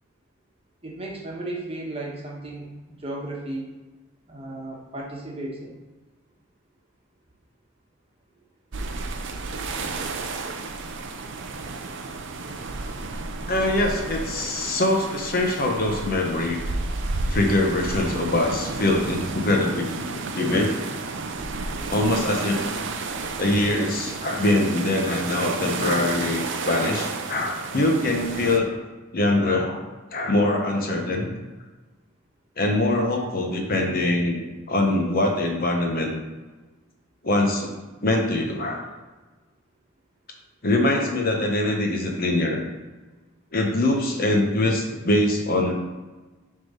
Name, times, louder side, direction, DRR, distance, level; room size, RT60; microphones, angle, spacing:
voice 1, 0.8-2.7 3.0-3.7 4.3-5.7 14.4-14.5, right 2 dB, 30° right, -2 dB, 1.3 m, -34 dB
sound 1, 8.7-28.6, right 3 dB, 60° right, 0.6 m, -32 dB
voice 2, 13.5-16.6 17.3-20.7 21.9-22.6 23.4-28.7 29.1-29.8 30.1-31.3 32.6-34.4 34.7-36.1 37.2-37.7 38.0-38.8 40.6-42.6 43.5-45.7, left 1 dB, 45° left, 2 dB, 1.0 m, -23 dB
6.5 x 3.7 x 5.5 m, 1.2 s
head